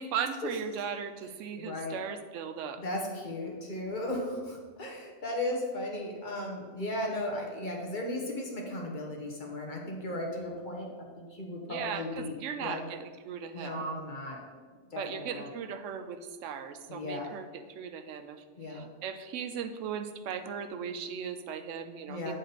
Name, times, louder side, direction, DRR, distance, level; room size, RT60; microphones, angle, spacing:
voice 1, 0.0-2.8 11.7-13.8 15.0-18.4 18.7-22.3, right 7 dB, 90° right, 9 dB, 0.9 m, -37 dB
voice 2, 1.6-2.0 2.8-10.9 11.2-12.8 13.5-14.4 14.9-15.5 16.9-17.3 18.6-18.8 22.1-22.3, left 1 dB, 45° left, -1 dB, 1.2 m, -36 dB
8.3 x 3.9 x 4.1 m, 1.4 s
omnidirectional pair, 1.2 m